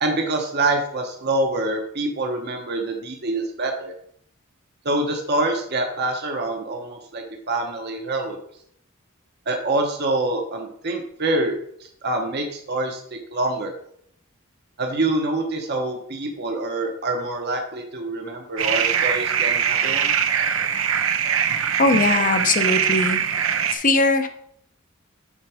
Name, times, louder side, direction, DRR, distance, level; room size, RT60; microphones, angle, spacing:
voice 1, 0.0-3.9 4.8-8.4 9.5-11.5 12.0-13.0 13.3-13.7 14.8-20.1, right 2 dB, 55° right, 2 dB, 1.0 m, -25 dB
sound 1, 18.6-23.7, right 8 dB, 75° right, 0.7 m, -22 dB
voice 2, 21.8-23.2 23.7-24.3, left 3 dB, 40° left, 7 dB, 0.8 m, -20 dB
7.4 x 4.5 x 4.9 m, 0.68 s
head